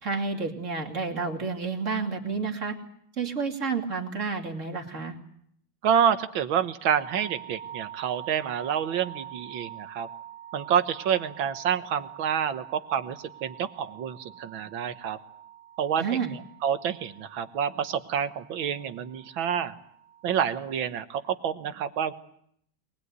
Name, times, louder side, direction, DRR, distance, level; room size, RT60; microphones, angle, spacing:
voice 1, 0.0-2.8 3.2-5.2 16.0-16.3, right 5 dB, 40° right, 3 dB, 3.0 m, -30 dB
voice 2, 5.8-10.1 10.5-15.2 15.8-19.8 20.2-22.1, right 8 dB, 90° right, 11 dB, 2.0 m, -28 dB
sound 1, 7.0-21.0, right 10 dB, 30° left, 1.6 m, -46 dB
23.0 x 20.0 x 9.5 m, 0.69 s
omnidirectional pair, 2.1 m